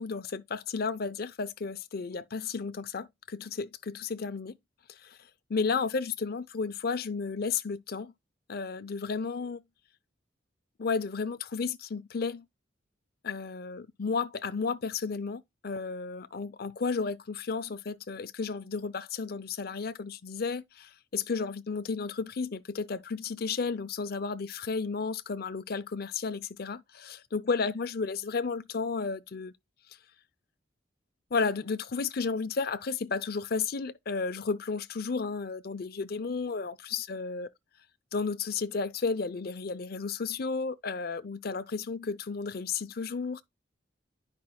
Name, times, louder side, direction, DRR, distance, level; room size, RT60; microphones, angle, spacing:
voice 1, 0.0-4.6 4.9-5.2 5.5-8.1 8.5-9.6 10.8-12.4 13.2-29.5 31.3-37.5 38.1-43.4, left 4 dB, 55° left, 0.5 m, -33 dB
10.5 x 5.2 x 2.3 m
head